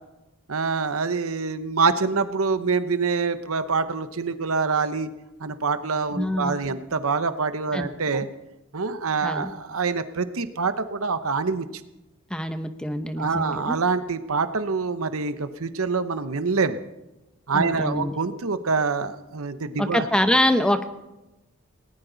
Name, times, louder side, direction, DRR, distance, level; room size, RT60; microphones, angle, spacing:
voice 1, 0.5-5.1 5.4-8.3 8.7-11.7 13.2-16.8 17.5-20.0, right 4 dB, 75° right, 11 dB, 0.9 m, -25 dB
voice 2, 6.2-6.6 7.7-7.9 8.1-8.2 9.2-9.5 12.3-13.8 17.5-18.2 19.8-20.8, left 1 dB, 5° left, 8 dB, 0.8 m, -25 dB
19.0 x 18.5 x 4.0 m, 0.99 s
head